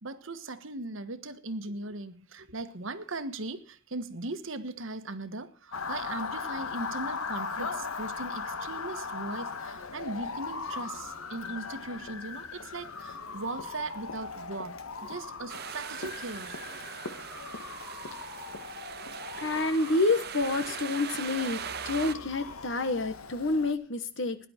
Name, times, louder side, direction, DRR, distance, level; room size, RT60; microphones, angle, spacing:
voice 1, 0.0-16.7 17.1-17.3, right 2 dB, 65° right, 1.4 m, -39 dB
Motor vehicle (road) / Siren, 5.7-23.7, left 4 dB, 85° left, 1.5 m, -39 dB
sound 1, 15.5-22.2, right 8 dB, 45° right, 0.7 m, -40 dB
voice 2, 19.3-24.4, left 2 dB, 60° left, 1.3 m, -28 dB
18.0 x 10.5 x 4.4 m
head